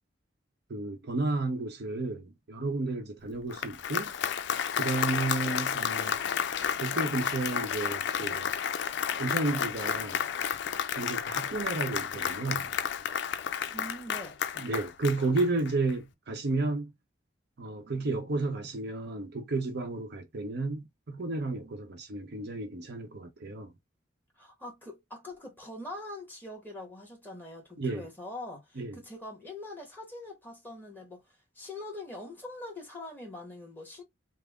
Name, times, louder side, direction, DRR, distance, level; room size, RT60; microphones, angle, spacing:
voice 1, 0.7-4.1 4.8-6.2 6.8-8.5 9.2-10.2 11.0-12.8 14.6-16.9 17.6-23.7 27.8-28.0 28.8-29.0, right 3 dB, 60° right, 0.8 m, -32 dB
Applause, 3.3-15.9, left 8 dB, 65° left, 0.4 m, -32 dB
voice 2, 13.7-14.4 24.4-31.2 31.5-34.0, left 2 dB, 10° left, 1.6 m, -43 dB
3.5 x 2.0 x 3.6 m
head